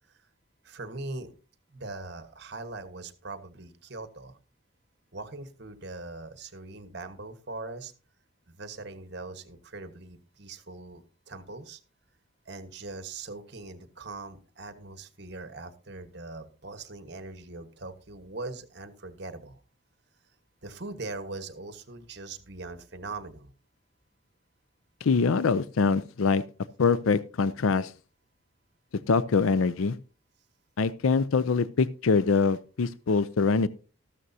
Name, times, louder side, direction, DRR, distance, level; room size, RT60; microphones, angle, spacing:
voice 1, 0.6-1.3 1.7-4.4 5.1-7.9 8.5-11.8 12.4-19.6 20.6-23.5, right 3 dB, 55° right, 10 dB, 1.3 m, -41 dB
voice 2, 25.0-26.4 26.8-27.9 29.1-30.0 30.8-33.7, left 4 dB, 80° left, 15 dB, 0.5 m, -24 dB
13.5 x 12.5 x 2.7 m, 0.34 s
head